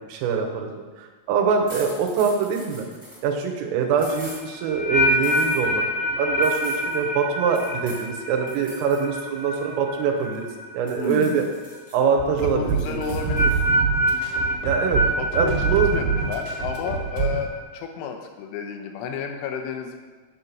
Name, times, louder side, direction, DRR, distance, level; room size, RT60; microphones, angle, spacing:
voice 1, 0.1-0.7 1.0-2.9 3.2-10.4 10.7-11.5 11.9-13.0 14.6-15.0 15.4-15.9, right 6 dB, 90° right, 3 dB, 3.6 m, -24 dB
sound 1, 1.7-3.2 4.0-4.4 5.2-5.6 6.4-7.0 7.5-8.1 8.5-9.0 9.4-10.5 10.9-11.9 12.4-13.6, equal, 5° left, 1.2 m, -43 dB
sound 2, 4.0-11.1 11.3-11.8 13.0-17.6, equal, 65° left, 1.8 m, -26 dB
voice 2, 11.0-11.5 12.4-13.5 15.2-15.6 15.9-20.0, left 6 dB, 80° left, 4 dB, 3.2 m, -31 dB
sound 3, 12.2-17.4, right 6 dB, 70° right, 3.6 m, -26 dB
9.5 x 6.0 x 5.4 m, 1.4 s
omnidirectional pair, 5.9 m